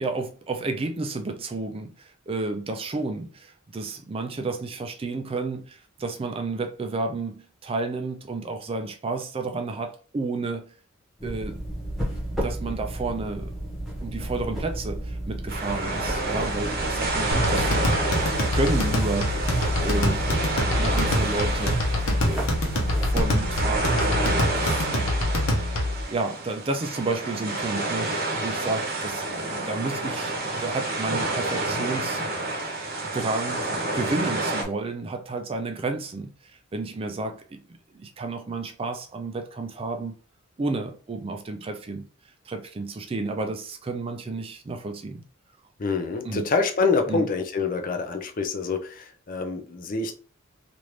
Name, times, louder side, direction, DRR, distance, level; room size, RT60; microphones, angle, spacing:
voice 1, 0.0-10.7 11.2-11.7 12.1-13.5 14.0-18.0 18.5-19.3 19.8-21.8 22.2-22.7 23.0-25.1 26.1-30.3 30.6-32.2 33.1-40.1 40.6-42.1 42.5-45.2 46.2-46.5 47.1-47.3, right 3 dB, 25° right, 0.4 m, -31 dB
sound 1, 11.2-23.8, right 1 dB, ahead, 1.0 m, -33 dB
sound 2, 15.5-34.6, right 2 dB, 45° right, 0.8 m, -29 dB
sound 3, 17.3-26.0, left 1 dB, 80° left, 0.8 m, -25 dB
voice 2, 45.8-50.2, left 4 dB, 40° left, 0.5 m, -26 dB
3.2 x 2.5 x 3.1 m
head